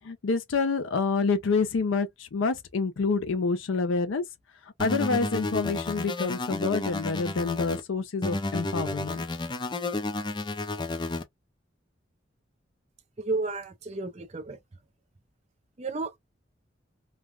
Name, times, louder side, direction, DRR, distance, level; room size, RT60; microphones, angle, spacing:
voice 1, 0.0-4.2 4.8-9.2, left 4 dB, 90° left, 0.5 m, -27 dB
sound 1, 4.8-7.8 8.2-11.2, left 2 dB, 25° left, 0.4 m, -31 dB
voice 2, 13.2-14.6 15.8-16.2, right 3 dB, 35° right, 0.5 m, -32 dB
3.2 x 2.2 x 2.3 m
head